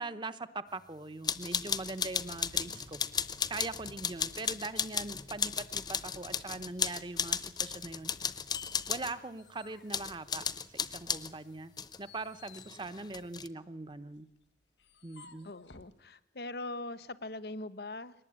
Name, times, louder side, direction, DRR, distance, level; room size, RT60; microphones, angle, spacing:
voice 1, 0.0-3.0 3.5-8.1 8.9-10.4 10.7-11.7 12.0-14.3 15.0-15.5, right 3 dB, 25° right, 0.9 m, -41 dB
sound 1, 1.2-9.1 9.9-11.3 11.8-12.0 12.5-13.5, left 7 dB, 25° left, 0.8 m, -35 dB
Car / Engine starting / Accelerating revving vroom, 1.4-8.5, equal, 80° right, 2.5 m, -60 dB
sound 2, 9.3-10.9 11.3-16.0, left 4 dB, 90° left, 1.7 m, -59 dB
voice 2, 15.4-18.1, left 2 dB, 60° left, 1.0 m, -41 dB
22.5 x 19.0 x 8.8 m
head